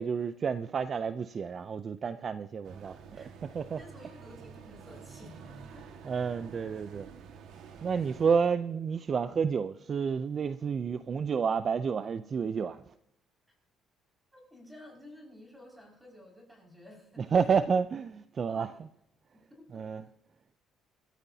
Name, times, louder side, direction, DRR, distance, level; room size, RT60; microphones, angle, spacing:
voice 1, 0.0-3.8 6.1-7.1 7.8-12.8 17.3-18.7 19.7-20.0, right 6 dB, 40° right, 0.5 m, -30 dB
sound 1, 2.6-8.4, right 6 dB, 75° right, 1.7 m, -49 dB
voice 2, 3.8-5.9 7.9-8.4 14.3-17.3 18.5-18.8 19.6-19.9, left 1 dB, 5° right, 5.7 m, -52 dB
25.5 x 13.5 x 2.8 m
cardioid pair, 120°, 0 cm